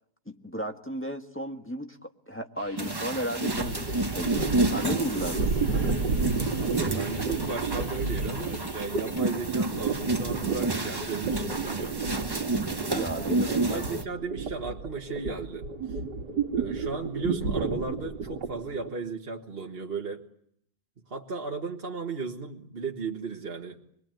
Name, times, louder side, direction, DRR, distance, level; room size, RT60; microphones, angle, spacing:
voice 1, 0.3-5.9 12.9-13.9, equal, 10° left, 4 dB, 1.4 m, -35 dB
sound 1, 2.6-9.5, equal, 75° left, 8.8 m, -49 dB
sound 2, 2.8-14.0, right 2 dB, 15° right, 1.0 m, -31 dB
sound 3, 3.5-18.9, right 4 dB, 85° right, 2.6 m, -32 dB
voice 2, 6.6-12.0 12.9-16.0 16.5-20.2 21.1-23.8, right 4 dB, 35° right, 1 dB, 1.6 m, -35 dB
27.0 x 21.5 x 9.1 m, 0.71 s
omnidirectional pair, 1.8 m